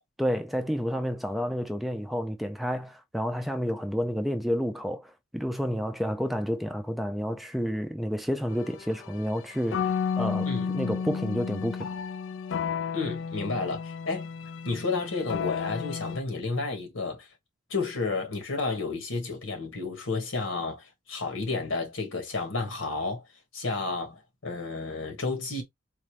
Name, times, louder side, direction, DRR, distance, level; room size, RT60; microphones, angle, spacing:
voice 1, 0.2-10.5 10.7-11.9, equal, ahead, 0.4 m, -30 dB
sound 1, 8.5-16.2, left 6 dB, 70° left, 0.4 m, -32 dB
voice 2, 12.9-14.3 14.6-17.3 17.7-23.3 23.5-25.6, left 3 dB, 90° left, 1.6 m, -31 dB
4.1 x 2.6 x 3.1 m
head